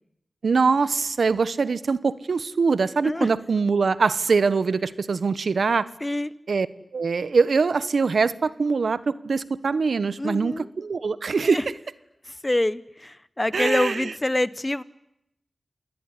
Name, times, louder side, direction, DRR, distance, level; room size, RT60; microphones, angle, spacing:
voice 1, 0.4-5.9 6.5-6.7 6.9-11.6 13.5-14.1, right 4 dB, 75° right, 16 dB, 1.1 m, -23 dB
voice 2, 10.2-10.7 11.4-11.6 12.3-14.8, left 1 dB, 20° left, 18 dB, 1.1 m, -26 dB
28.0 x 19.5 x 9.9 m, 0.81 s
wide cardioid pair, 60°, 0 cm